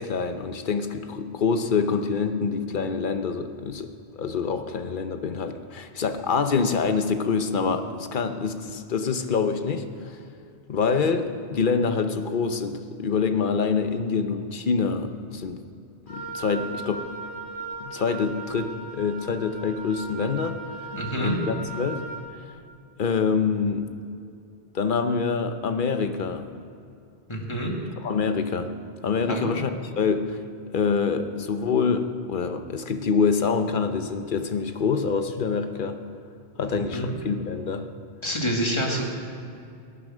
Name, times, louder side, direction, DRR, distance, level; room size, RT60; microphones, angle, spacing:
voice 1, 0.0-3.9 4.2-10.2 10.7-15.6 16.0-17.1 17.8-20.6 21.2-22.0 23.0-23.9 24.7-26.5 28.0-28.7 29.0-30.4 30.7-36.0 36.6-37.9, left 5 dB, 50° left, 8 dB, 1.0 m, -26 dB
Wind instrument woodwind instrument, 16.1-22.3, right 4 dB, 80° left, 2.2 m, -37 dB
voice 2, 20.9-21.4 27.3-27.7 29.3-29.6 36.7-37.1 38.2-39.0, right 1 dB, 25° left, -1 dB, 2.1 m, -28 dB
17.5 x 9.9 x 6.2 m, 2.5 s
omnidirectional pair, 1.1 m